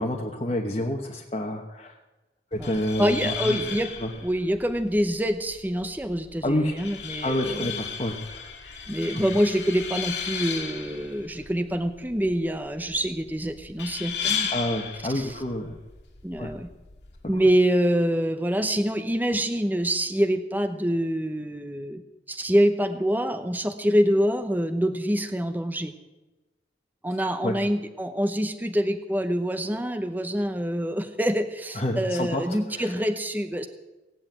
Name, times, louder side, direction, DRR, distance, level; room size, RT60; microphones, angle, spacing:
voice 1, 0.0-1.9 2.5-3.6 4.0-4.1 6.4-6.7 7.2-8.5 14.5-15.7 16.4-16.5 27.2-27.5 31.7-32.4 32.7-32.9, left 1 dB, 35° left, 0 dB, 1.2 m, -28 dB
sound 1, 2.5-17.5, left 7 dB, 80° left, 2.0 m, -35 dB
voice 2, 3.0-3.9 4.2-7.8 8.9-14.5 15.1-15.4 16.2-16.7 17.3-22.0 22.3-25.9 27.0-33.7, equal, 10° right, 7 dB, 0.8 m, -25 dB
17.5 x 8.3 x 9.0 m, 1.1 s
head